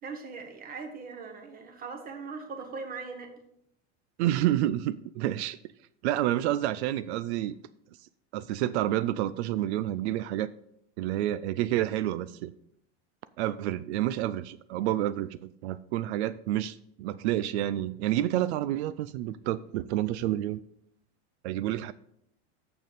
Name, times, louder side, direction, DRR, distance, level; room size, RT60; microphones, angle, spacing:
voice 1, 0.0-3.3, right 4 dB, 25° right, 5 dB, 1.3 m, -40 dB
voice 2, 4.2-5.6 6.0-7.6 8.3-10.5 11.0-12.5 13.4-20.6 21.4-21.9, right 13 dB, 90° right, 15 dB, 0.5 m, -29 dB
6.9 x 6.5 x 5.0 m, 0.73 s
supercardioid pair, 145°, 32 cm